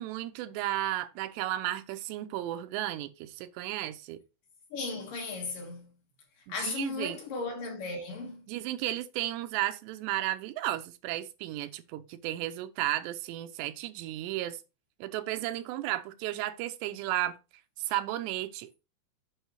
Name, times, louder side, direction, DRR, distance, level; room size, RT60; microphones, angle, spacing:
voice 1, 0.0-4.2 6.5-7.2 8.5-14.6 15.0-17.4 17.8-18.7, right 14 dB, 90° right, 2.9 m, -34 dB
voice 2, 4.7-5.9 6.5-8.4, left 3 dB, 60° left, 2.9 m, -36 dB
7.9 x 5.6 x 3.1 m
omnidirectional pair, 4.9 m